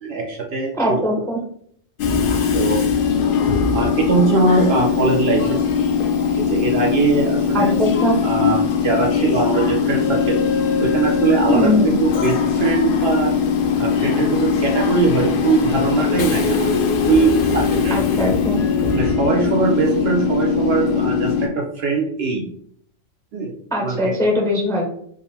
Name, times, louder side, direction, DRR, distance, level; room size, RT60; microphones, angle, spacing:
voice 1, 0.0-1.0 2.5-2.8 3.7-5.6 6.3-7.7 8.2-10.4 10.8-13.3 13.8-18.1 18.9-22.5 23.3-23.5 23.8-24.1, right 4 dB, 65° right, 1 dB, 0.7 m, -21 dB
voice 2, 0.8-1.4 7.5-8.2 11.5-11.9 17.9-18.6 23.7-24.9, left 1 dB, 5° left, -1 dB, 0.5 m, -20 dB
Train / Subway metro underground, 2.0-21.5, left 6 dB, 60° left, 0.6 m, -20 dB
3.7 x 2.1 x 4.1 m, 0.65 s
omnidirectional pair, 1.3 m